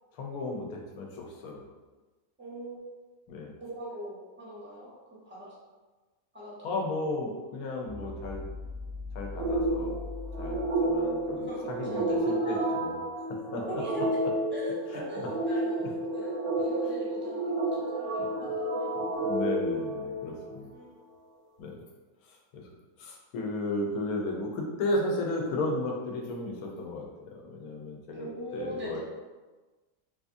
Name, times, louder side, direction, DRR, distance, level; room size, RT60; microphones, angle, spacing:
voice 1, 0.1-1.7 3.3-3.6 6.6-8.4 9.1-10.0 10.4-13.0 13.3-13.7 15.2-15.3 15.8-15.9 18.2-18.3 19.0-20.7 21.6-21.7 22.2-22.6 23.0-28.3 28.5-29.0, left 2 dB, 75° left, 0 dB, 1.1 m, -34 dB
voice 2, 2.4-2.9 3.6-4.9 5.2-5.5 6.3-6.7 11.3-12.6 13.8-14.2 14.5-19.0 20.7-20.9 28.1-29.0, right 1 dB, 15° right, -7 dB, 0.5 m, -41 dB
sound 1, 7.8-11.9, left 3 dB, 90° right, 1.6 m, -41 dB
sound 2, 9.3-20.7, right 1 dB, 70° right, 1.0 m, -30 dB
4.0 x 2.4 x 2.5 m, 1.3 s
omnidirectional pair, 1.6 m